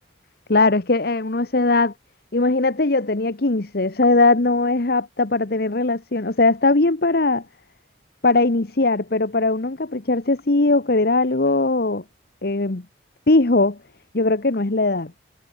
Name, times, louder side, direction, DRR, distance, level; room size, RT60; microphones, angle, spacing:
voice 1, 0.5-1.9 2.3-7.4 8.2-12.0 12.4-12.8 13.3-13.8 14.1-15.1, left 2 dB, 55° left, 1.2 m, -19 dB
head